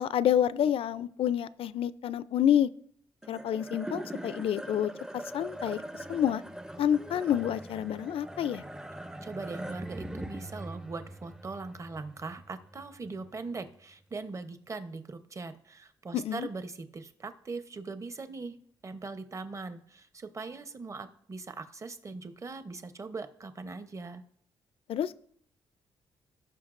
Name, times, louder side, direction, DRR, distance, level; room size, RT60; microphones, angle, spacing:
voice 1, 0.0-2.7 3.3-6.4 6.8-8.6 16.1-16.5 24.9-25.2, left 10 dB, 65° left, 17 dB, 0.4 m, -28 dB
sound 1, 3.2-13.7, right 1 dB, 5° right, 0.5 m, -42 dB
voice 2, 9.2-18.6 18.8-24.2, right 3 dB, 30° right, 10 dB, 0.8 m, -40 dB
17.5 x 5.8 x 2.5 m, 0.65 s
cardioid pair, 100°, 10 cm